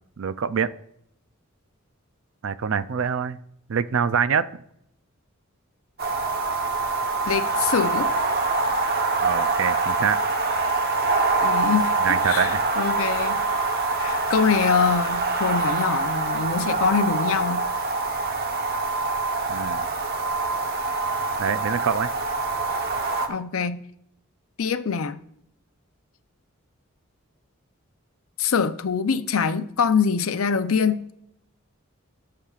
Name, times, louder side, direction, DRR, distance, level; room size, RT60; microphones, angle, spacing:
voice 1, 0.2-0.7 2.4-3.4 3.7-4.5 9.2-10.2 12.0-12.7 19.5-19.9 21.4-22.1, right 7 dB, 65° right, 0.4 m, -25 dB
sound 1, 6.0-23.3, right 3 dB, 45° right, 0.9 m, -25 dB
voice 2, 7.3-8.1 11.4-11.9 12.2-13.4 14.0-17.7 23.3-23.8 24.6-25.2 28.4-31.1, left 6 dB, 80° left, 0.6 m, -24 dB
18.5 x 6.7 x 2.4 m
head